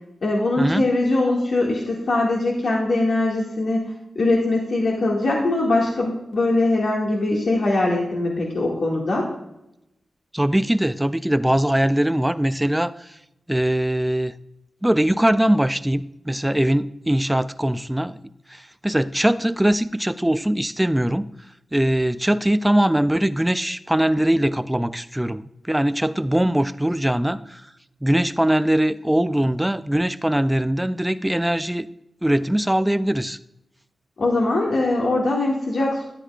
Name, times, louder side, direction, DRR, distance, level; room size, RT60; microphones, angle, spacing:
voice 1, 0.2-9.3 34.2-36.0, left 2 dB, 70° left, -3 dB, 2.0 m, -21 dB
voice 2, 10.3-13.1 13.5-14.3 14.8-18.2 18.5-21.3 21.7-27.6 28.0-31.9 32.2-33.4, right 1 dB, 5° right, 13 dB, 0.3 m, -21 dB
13.0 x 10.0 x 2.4 m, 0.85 s
wide cardioid pair, 165°, 0 cm